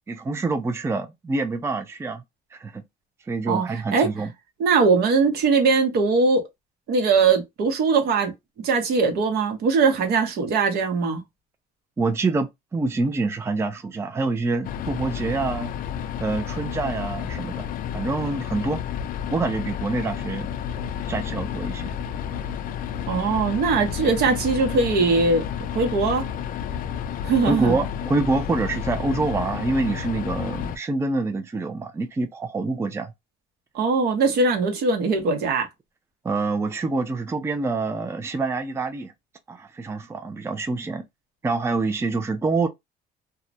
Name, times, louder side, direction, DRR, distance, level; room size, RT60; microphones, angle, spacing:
voice 1, 0.1-2.2 2.5-2.8 3.3-4.3 12.0-15.7 16.2-17.7 17.9-18.8 19.3-20.5 21.1-22.0 27.5-33.1 36.2-39.1 39.5-41.0 41.4-42.7, right 3 dB, 15° right, 0.4 m, -26 dB
voice 2, 4.6-6.4 6.9-8.3 8.6-11.2 23.1-26.3 27.2-27.8 33.7-35.7, right 4 dB, 70° right, 0.9 m, -21 dB
sound 1, 14.6-30.8, left 9 dB, 55° left, 0.4 m, -31 dB
2.3 x 2.1 x 2.5 m
cardioid pair, 110°, 17 cm